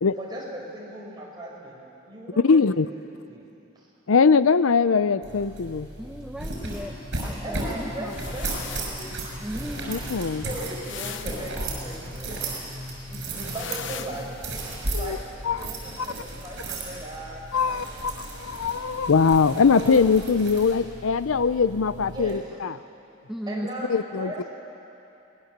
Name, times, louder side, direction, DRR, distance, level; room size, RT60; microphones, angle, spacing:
voice 1, 0.2-2.6 3.3-3.5 3.7-3.9 7.4-9.4 10.4-12.4 12.7-14.3 15.0-15.2 15.5-18.0 22.1-22.4 23.5-24.5, right 1 dB, 20° right, -3 dB, 4.9 m, -38 dB
voice 2, 2.4-2.9 4.1-5.9 9.9-10.4 14.9-15.2 15.4-15.6 17.5-22.7 23.9-24.3, left 5 dB, 90° left, 15 dB, 0.6 m, -21 dB
sound 1, 5.2-22.4, right 2 dB, 55° right, 5.9 m, -35 dB
voice 3, 6.0-6.9 7.2-7.6 9.4-9.9 23.3-23.7, right 1 dB, 5° right, 2 dB, 0.8 m, -35 dB
sound 2, 6.9-14.8, left 2 dB, 20° left, 4.9 m, -43 dB
sound 3, 8.1-9.0 10.8-11.6 13.5-14.5, left 8 dB, 65° left, 0.9 m, -39 dB
24.5 x 19.5 x 7.4 m, 2.7 s
head